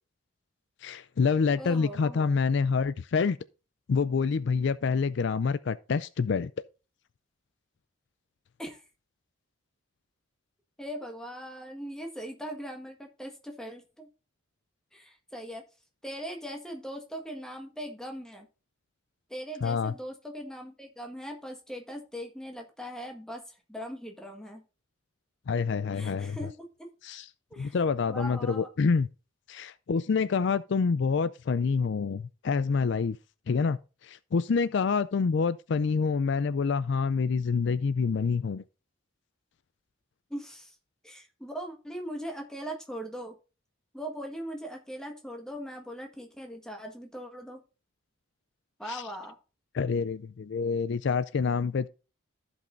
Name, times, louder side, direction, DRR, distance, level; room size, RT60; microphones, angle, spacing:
voice 1, 0.8-3.4 3.9-6.5 19.6-19.9 25.5-26.5 27.0-27.3 27.6-29.1 29.5-33.2 33.5-38.6 48.9-49.0 49.7-51.9, left 5 dB, 55° left, 0.4 m, -27 dB
voice 2, 1.5-2.3 8.6-8.8 10.8-14.1 14.9-15.6 16.0-18.5 19.3-24.6 25.9-26.9 27.5-27.8 28.1-28.7 40.3-40.7 41.0-43.4 43.9-47.6 48.8-49.4, equal, 5° left, 1.5 m, -40 dB
15.0 x 5.4 x 2.6 m
head